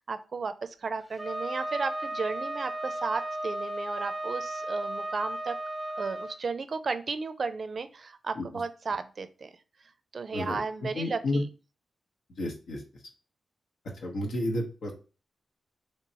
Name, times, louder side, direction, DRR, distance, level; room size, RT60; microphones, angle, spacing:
voice 1, 0.0-5.6 6.0-9.5 10.1-11.5, right 4 dB, 55° right, 11 dB, 0.4 m, -34 dB
Wind instrument woodwind instrument, 1.2-6.3, right 1 dB, ahead, 0.8 m, -35 dB
voice 2, 10.3-11.4 12.4-12.8 14.0-14.9, left 1 dB, 80° left, 1 dB, 0.9 m, -31 dB
3.2 x 3.0 x 2.8 m, 0.34 s
cardioid pair, 55°, 0 cm